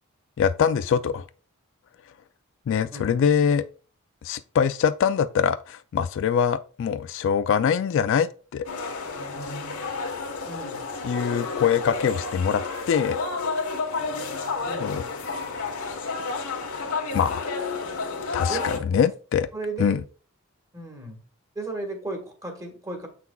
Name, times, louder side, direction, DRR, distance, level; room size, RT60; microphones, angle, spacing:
voice 1, 0.4-1.2 2.7-3.6 4.2-8.7 11.0-13.2 14.8-15.0 17.1-17.4 18.3-19.5 19.8-20.0, left 7 dB, 60° left, 0.3 m, -23 dB
voice 2, 2.9-3.2 10.5-10.8 14.6-15.1 18.5-18.6 19.5-20.0 20.7-21.2 21.5-23.1, right 3 dB, 15° right, 1.4 m, -35 dB
sound 1, 8.6-18.8, left 4 dB, 85° left, 1.2 m, -31 dB
7.1 x 5.8 x 2.3 m
head